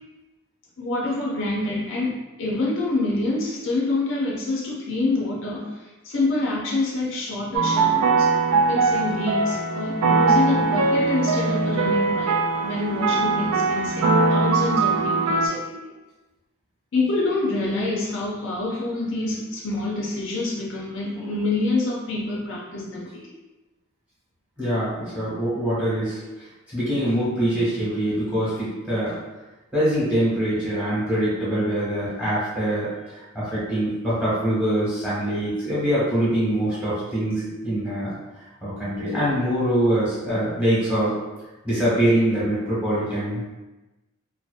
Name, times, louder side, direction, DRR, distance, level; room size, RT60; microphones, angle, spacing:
voice 1, 0.8-5.7 6.0-8.3 8.7-15.9 16.9-23.3, left 2 dB, 55° left, -4 dB, 0.4 m, -26 dB
sound 1, 7.5-15.5, right 3 dB, 85° right, 0.4 m, -21 dB
voice 2, 24.6-26.2 26.7-29.2 29.7-38.1 38.6-41.1 41.6-43.5, right 1 dB, 5° right, -11 dB, 1.0 m, -24 dB
2.7 x 2.1 x 2.4 m, 1.1 s
head